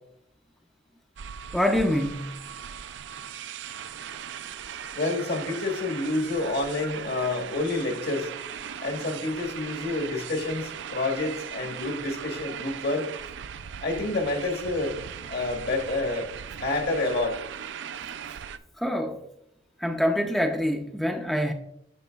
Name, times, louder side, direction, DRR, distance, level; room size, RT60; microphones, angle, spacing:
sound 1, 1.2-18.6, right 8 dB, 70° right, 0.4 m, -39 dB
voice 1, 1.5-2.3 18.8-19.2 19.8-21.5, equal, ahead, 0.4 m, -25 dB
voice 2, 5.0-8.3 8.8-13.0 13.8-14.9 15.3-16.3 16.6-17.4, left 2 dB, 60° left, 1.3 m, -28 dB
9.4 x 6.6 x 2.3 m
head